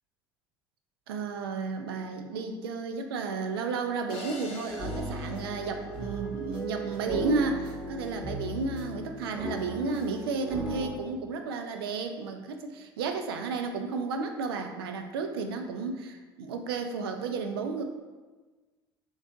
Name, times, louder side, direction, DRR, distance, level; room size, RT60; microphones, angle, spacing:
voice 1, 1.1-17.8, right 4 dB, 80° right, 6 dB, 0.4 m, -32 dB
sound 1, 4.1-6.4, left 3 dB, 55° left, 0.8 m, -44 dB
sound 2, 4.7-10.9, equal, 10° right, 1.4 m, -36 dB
3.9 x 3.4 x 2.5 m, 1.3 s
hypercardioid pair, 65°, 13 cm